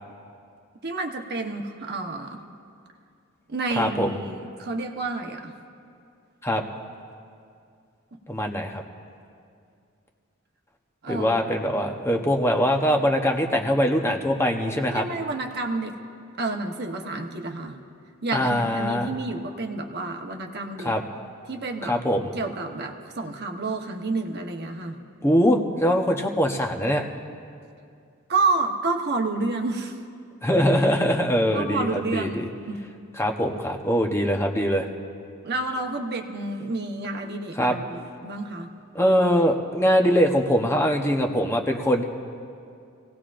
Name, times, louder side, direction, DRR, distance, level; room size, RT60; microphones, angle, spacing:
voice 1, 0.8-2.4 3.5-5.5 8.1-8.2 11.0-11.4 14.9-16.0 16.4-17.8 18.2-20.9 21.5-22.0 22.3-25.0 28.3-30.0 31.5-32.8 35.4-38.7, right 3 dB, 50° right, 3 dB, 1.0 m, -29 dB
voice 2, 3.8-4.1 6.4-6.6 8.3-8.8 11.1-15.0 18.3-19.1 20.8-21.0 21.8-22.3 25.2-27.0 30.4-32.5 33.2-34.9 37.6-37.8 38.9-42.0, equal, 10° left, 3 dB, 0.8 m, -22 dB
26.5 x 17.5 x 2.5 m, 2.4 s
head